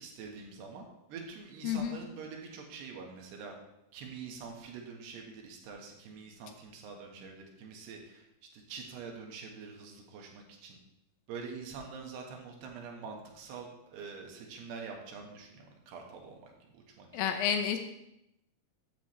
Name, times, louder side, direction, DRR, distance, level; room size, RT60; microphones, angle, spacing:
voice 1, 0.0-3.5 3.9-8.2 8.5-10.8 11.3-17.4, right 5 dB, 90° right, 1 dB, 3.7 m, -45 dB
voice 2, 1.6-2.0 17.1-17.8, left 8 dB, 75° left, 6 dB, 2.3 m, -30 dB
13.0 x 9.2 x 3.3 m, 0.85 s
omnidirectional pair, 4.6 m